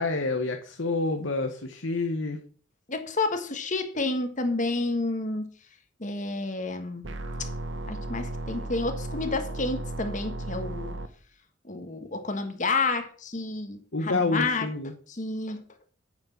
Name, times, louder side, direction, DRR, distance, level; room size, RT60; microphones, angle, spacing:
voice 1, 0.0-2.4 13.9-14.9, left 3 dB, 65° left, 1.2 m, -28 dB
voice 2, 2.9-5.5 6.0-7.1 7.4-7.5 7.9-11.0 11.6-14.7 15.1-15.6, left 3 dB, 40° left, 1.5 m, -30 dB
sound 1, 7.0-11.1, right 1 dB, 60° right, 1.1 m, -35 dB
9.5 x 6.4 x 7.3 m
head